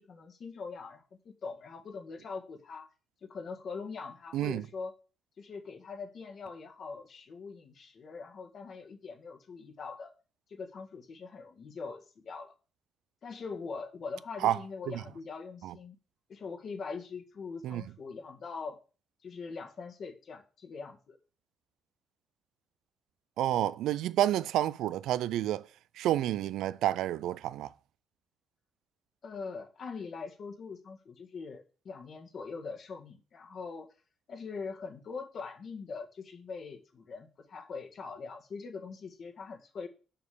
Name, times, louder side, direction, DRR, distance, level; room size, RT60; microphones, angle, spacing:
voice 1, 0.0-2.9 3.2-4.9 5.4-10.1 10.5-12.5 13.2-16.0 16.3-18.8 19.2-21.2 29.2-33.9 34.3-39.9, left 4 dB, 55° left, 1.8 m, -42 dB
voice 2, 4.3-4.6 14.4-14.6 15.6-15.7 17.6-17.8 23.4-25.6 26.0-27.7, right 12 dB, 85° right, 0.4 m, -29 dB
6.7 x 5.3 x 7.0 m
cardioid pair, 90°, 0 cm